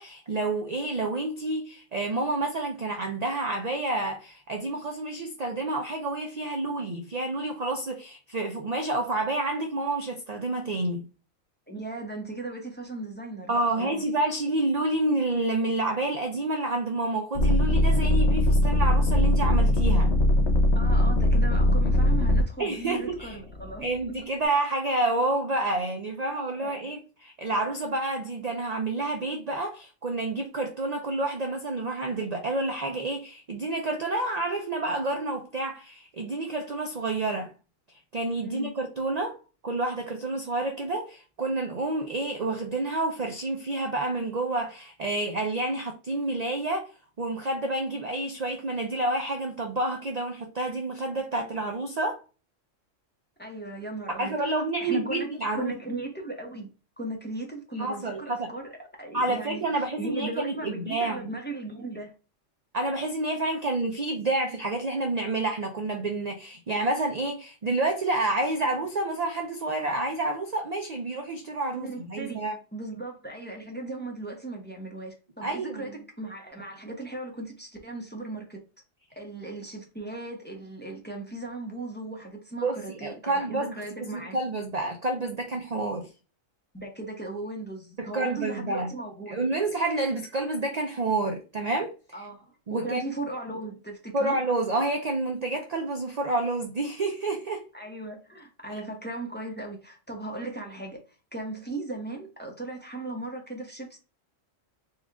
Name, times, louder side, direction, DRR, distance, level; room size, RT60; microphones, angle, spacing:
voice 1, 0.0-11.1 13.5-20.2 22.6-23.4 23.8-37.5 38.1-39.4 39.6-46.9 47.2-52.2 54.2-55.7 57.8-58.5 59.1-61.2 62.7-72.6 75.4-76.0 82.6-83.7 84.0-86.1 88.0-88.9 89.3-91.9 92.7-93.0 94.1-97.6, right 2 dB, 45° right, 0.5 m, -29 dB
voice 2, 11.7-14.0 20.7-24.2 26.6-26.9 38.4-38.7 53.4-54.5 54.8-56.7 57.0-62.1 71.7-78.6 79.2-84.4 86.7-89.4 92.1-94.4 97.7-101.0 101.3-104.0, right 2 dB, 10° left, 0.9 m, -37 dB
sound 1, 17.3-22.4 23.1-23.8, left 1 dB, 60° left, 1.0 m, -21 dB
4.3 x 2.4 x 3.5 m
omnidirectional pair, 1.3 m